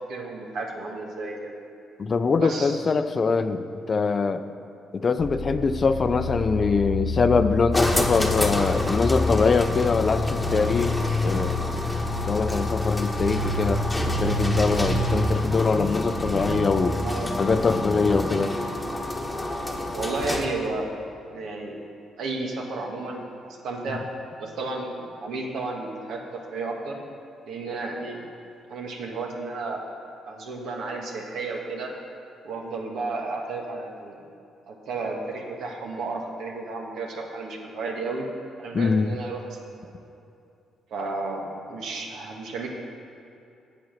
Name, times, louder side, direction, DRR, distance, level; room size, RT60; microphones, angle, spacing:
voice 1, 0.1-1.5 2.4-2.8 17.0-17.3 19.9-20.9 21.3-21.8 22.2-24.0 24.4-27.0 27.5-28.2 28.7-29.8 30.3-31.9 32.4-34.2 34.7-38.2 38.6-39.5 39.8-39.9 40.9-42.7, right 3 dB, 75° right, 0 dB, 1.6 m, -32 dB
voice 2, 2.0-4.4 4.9-11.0 11.2-11.6 12.3-17.0 17.4-18.5 38.7-39.2, left 4 dB, 40° left, 10 dB, 0.5 m, -23 dB
sound 1, 5.2-18.2, left 2 dB, 20° right, 2.8 m, -28 dB
sound 2, 7.7-20.7, left 1 dB, 10° left, 1.2 m, -30 dB
8.7 x 8.3 x 6.5 m, 2.7 s
cardioid pair, 90°, 0 cm